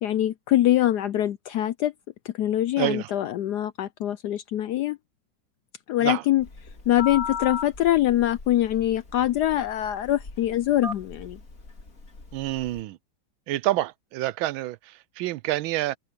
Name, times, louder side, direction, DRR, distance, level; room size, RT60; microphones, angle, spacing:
voice 1, 0.0-1.9 2.2-5.0 5.9-6.5 6.9-11.4, left 13 dB, 75° left, 0.9 m, -24 dB
voice 2, 2.8-3.1 6.0-6.2 12.3-13.0 13.5-16.0, right 16 dB, 80° right, 1.4 m, -28 dB
Telephone, 6.4-12.8, left 5 dB, 40° left, 3.3 m, -37 dB
omnidirectional pair, 2.2 m